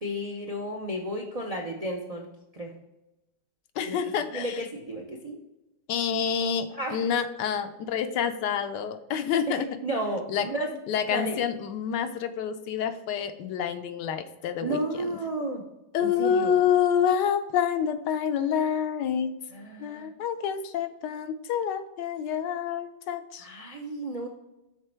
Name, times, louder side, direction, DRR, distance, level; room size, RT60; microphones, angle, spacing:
voice 1, 0.0-2.3 2.5-2.7 3.9-4.0 4.3-5.4 6.7-7.0 9.5-10.8 11.1-11.4 14.6-15.6 16.0-16.5 19.5-20.1 23.4-24.3, right 1 dB, 55° right, 0 dB, 0.4 m, -33 dB
voice 2, 3.8-4.6 5.9-9.7 10.3-10.5 10.9-14.8 15.9-19.3 19.8-23.5, left 8 dB, 75° left, 9 dB, 1.2 m, -27 dB
6.6 x 4.2 x 4.4 m, 0.94 s
omnidirectional pair, 1.9 m